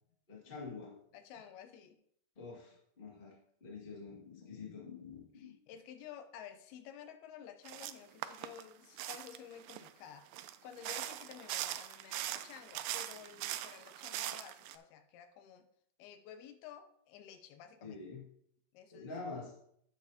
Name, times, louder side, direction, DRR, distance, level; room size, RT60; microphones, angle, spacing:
voice 1, 0.3-0.9 2.3-3.3 3.6-5.5 17.8-18.2 18.9-19.6, left 4 dB, 20° left, -2 dB, 1.3 m, -46 dB
voice 2, 1.1-2.0 5.3-15.7 16.0-18.0 18.7-19.1, left 8 dB, 85° left, 8 dB, 2.7 m, -52 dB
sound 1, 7.7-7.9 8.2-9.9 10.3-14.8, right 13 dB, 90° right, 2.5 m, -41 dB
10.0 x 7.9 x 2.8 m, 0.69 s
omnidirectional pair, 4.4 m